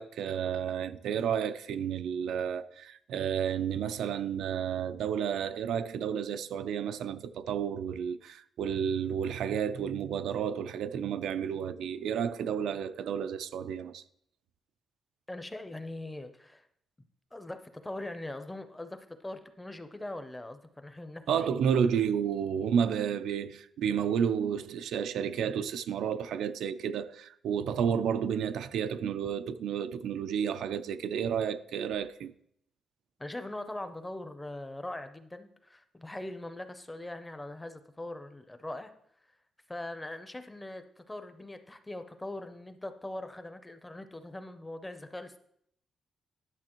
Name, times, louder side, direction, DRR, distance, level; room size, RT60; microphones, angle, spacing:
voice 1, 0.0-14.0 21.3-32.3, right 8 dB, 90° right, 0.4 m, -31 dB
voice 2, 15.3-16.6 17.3-21.5 33.2-38.9 39.7-45.4, left 1 dB, 10° left, 0.5 m, -41 dB
11.0 x 6.8 x 3.0 m
wide cardioid pair, 165°, 0 cm